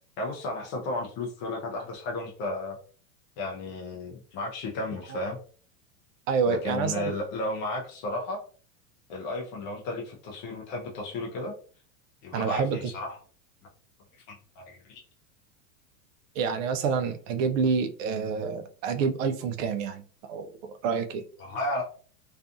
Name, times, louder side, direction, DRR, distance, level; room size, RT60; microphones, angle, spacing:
voice 1, 0.2-2.8 3.4-5.4 6.5-8.4 9.1-11.5 12.2-13.2 14.6-15.0 21.4-21.8, left 2 dB, 30° left, 0.4 m, -33 dB
voice 2, 6.3-7.1 12.3-12.9 16.4-20.0 20.3-20.5 20.8-21.2, right 5 dB, 70° right, 0.6 m, -27 dB
2.6 x 2.3 x 2.4 m
supercardioid pair, 135°, 41 cm